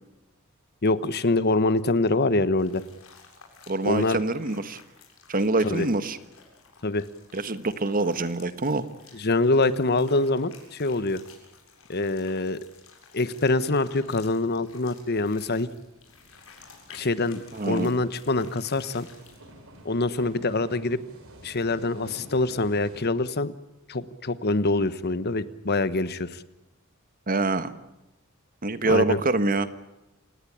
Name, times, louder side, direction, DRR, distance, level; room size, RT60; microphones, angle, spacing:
voice 1, 0.8-2.8 3.8-4.2 5.6-5.9 6.8-7.1 9.1-11.2 11.9-12.6 13.1-15.7 16.9-19.1 19.8-21.0 21.4-23.5 23.9-26.4 28.9-29.2, left 2 dB, 50° left, 15 dB, 1.2 m, -25 dB
sound 1, 2.6-19.5, left 5 dB, 80° left, 7.6 m, -53 dB
voice 2, 3.7-4.8 5.3-6.2 7.3-8.8 17.5-17.9 27.3-27.7 28.6-29.7, right 2 dB, 40° right, 12 dB, 1.4 m, -25 dB
sound 2, 13.9-23.0, right 1 dB, 70° right, 5.7 m, -51 dB
29.0 x 18.0 x 8.7 m, 0.97 s
head